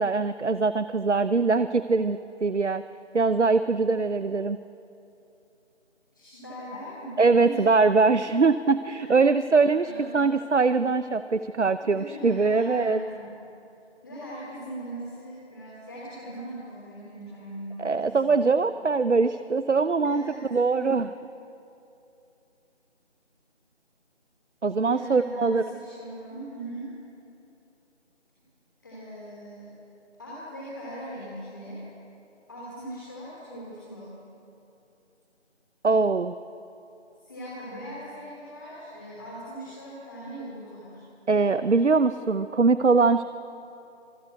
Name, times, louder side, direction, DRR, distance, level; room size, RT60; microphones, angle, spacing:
voice 1, 0.0-2.8 3.1-4.6 7.2-13.0 17.8-20.3 20.5-21.1 24.6-25.6 35.8-36.3 41.3-43.2, right 4 dB, 75° right, 13 dB, 0.8 m, -22 dB
voice 2, 6.1-7.7 8.9-9.5 9.8-10.3 11.9-13.3 14.0-17.9 18.2-18.5 20.0-20.4 20.7-20.9 24.8-26.9 28.8-29.7 30.2-31.8 32.5-34.2 37.2-41.0, right 1 dB, 15° left, -6 dB, 3.2 m, -40 dB
25.5 x 19.0 x 8.1 m, 2.8 s
figure-of-eight pair, 170°, 35 cm